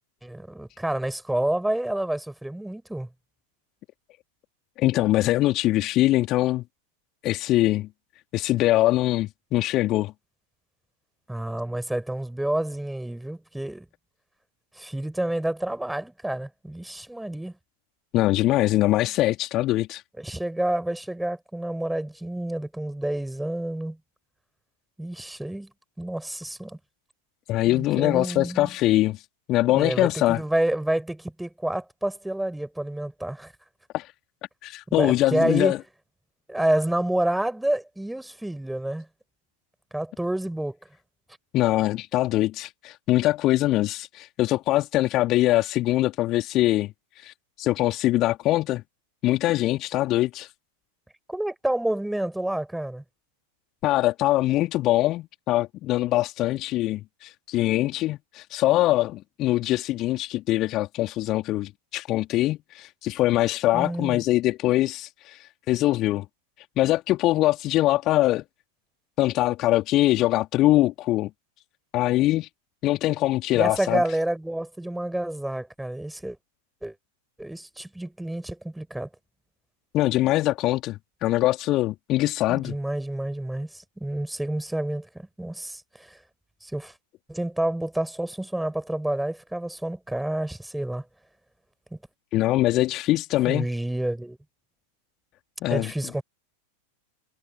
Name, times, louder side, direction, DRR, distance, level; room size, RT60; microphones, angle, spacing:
voice 1, 0.2-3.1 11.3-13.9 14.7-17.6 20.2-24.0 25.0-25.7 26.0-26.8 27.7-28.7 29.7-33.5 34.9-35.8 36.5-39.1 39.9-40.8 51.3-53.0 63.7-64.2 73.5-76.4 76.8-77.0 77.4-79.1 82.5-86.2 86.6-86.9 87.3-91.0 91.9-92.0 93.5-94.4 95.7-96.2, right 1 dB, 5° right, 7.1 m, -29 dB
voice 2, 4.8-6.6 7.2-7.9 8.3-10.1 18.1-20.0 27.5-29.2 29.5-30.4 33.9-34.1 34.6-35.8 41.5-48.8 49.2-50.5 53.8-66.3 66.8-68.4 69.2-71.3 71.9-72.5 72.8-74.0 79.9-82.7 92.3-93.7 95.6-95.9, left 16 dB, 35° left, 2.9 m, -23 dB
figure-of-eight pair, 90°, 0 cm